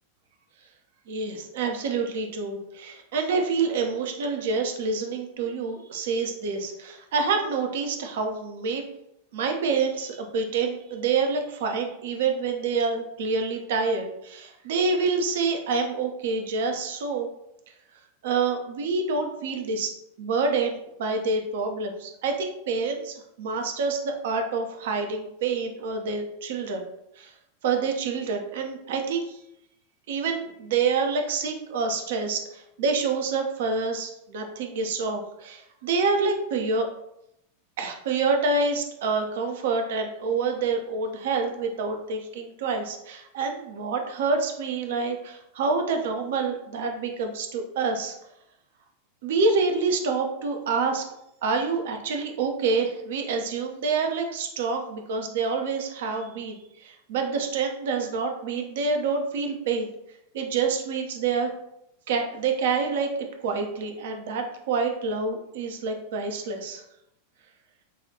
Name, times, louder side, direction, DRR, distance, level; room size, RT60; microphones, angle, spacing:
voice 1, 1.1-8.8 9.3-17.3 18.2-19.9 20.2-26.8 27.2-27.3 27.6-29.4 30.1-36.9 37.8-48.2 49.2-51.0 51.4-59.9 60.3-61.5 62.1-63.1 63.4-66.8, right 4 dB, 55° right, 4 dB, 0.6 m, -27 dB
5.6 x 2.4 x 2.7 m, 0.81 s
figure-of-eight pair, 90°, 0 cm